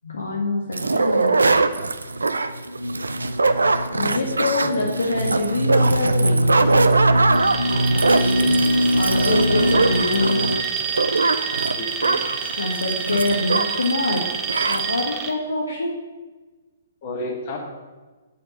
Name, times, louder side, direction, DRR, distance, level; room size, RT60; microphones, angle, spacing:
voice 1, 0.0-1.4 3.9-6.8 9.0-10.4 12.6-14.3 14.7-15.9, left 2 dB, 65° left, -1 dB, 1.4 m, -25 dB
sound 1, 0.7-13.9 14.2-14.3 14.5-14.8, right 3 dB, 75° right, 0.5 m, -22 dB
sound 2, 2.1-10.6, equal, 90° left, 0.5 m, -23 dB
Alarm, 7.3-15.3, right 6 dB, 20° right, 0.8 m, -28 dB
voice 2, 8.1-8.6 11.8-12.2 17.0-17.6, left 2 dB, 40° left, 0 dB, 2.2 m, -32 dB
8.3 x 4.6 x 7.1 m, 1.3 s
figure-of-eight pair, 125°, 0 cm